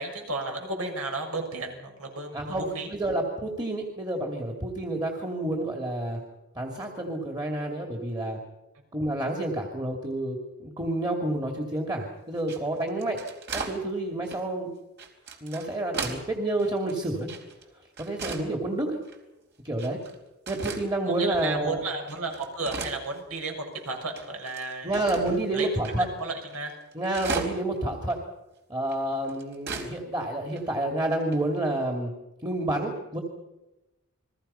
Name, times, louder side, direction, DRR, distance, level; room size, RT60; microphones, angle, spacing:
voice 1, 0.0-2.9 21.1-25.2 25.5-25.7 26.0-26.8, right 3 dB, 75° right, 2 dB, 6.7 m, -33 dB
voice 2, 2.3-6.2 6.6-8.4 8.9-13.2 13.5-14.7 15.4-17.3 18.0-19.0 19.6-20.0 20.5-21.8 24.8-26.1 26.9-28.2 28.7-32.1 32.4-33.2, right 1 dB, 20° right, 2 dB, 2.5 m, -29 dB
sound 1, 12.4-13.8 14.2-14.4 15.0-16.3 16.6-17.6 18.0-18.5 19.0-19.2 19.8-20.2 20.5-20.8 21.4-21.5 21.9-23.5 23.8-23.9 24.2-25.4 25.8-26.0 26.2-26.3 26.5-27.8 28.1-28.2 28.9-29.9 30.2-30.3 30.5-30.6 31.3-31.6, right 4 dB, 50° right, 4.3 m, -36 dB
30.0 x 22.0 x 5.7 m, 1.0 s
head